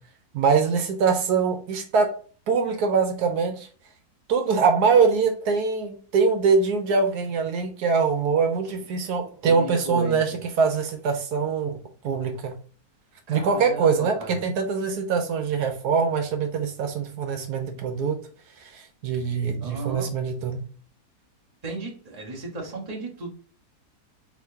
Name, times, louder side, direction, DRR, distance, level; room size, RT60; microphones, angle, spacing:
voice 1, 0.3-2.1 2.5-3.7 4.3-11.8 12.0-12.5 13.3-18.2 18.6-20.6, right 5 dB, 80° right, 5 dB, 1.3 m, -23 dB
voice 2, 9.0-10.2 13.3-14.4 19.6-20.1 21.6-23.3, right 2 dB, 25° right, -3 dB, 1.3 m, -35 dB
4.4 x 4.2 x 2.8 m, 0.40 s
omnidirectional pair, 1.7 m